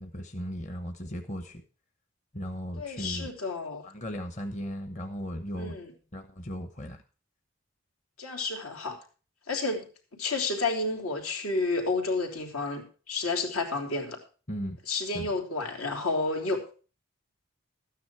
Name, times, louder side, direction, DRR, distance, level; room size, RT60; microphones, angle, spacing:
voice 1, 0.0-1.6 2.3-3.3 3.8-5.8 6.1-7.0 14.5-14.8 15.1-15.3, equal, 35° left, 6 dB, 1.0 m, -36 dB
voice 2, 2.8-3.8 5.6-5.9 8.2-9.0 9.5-9.8 10.1-14.2 14.9-16.7, left 3 dB, 85° left, 2 dB, 3.0 m, -30 dB
13.0 x 9.6 x 4.5 m, 0.37 s
head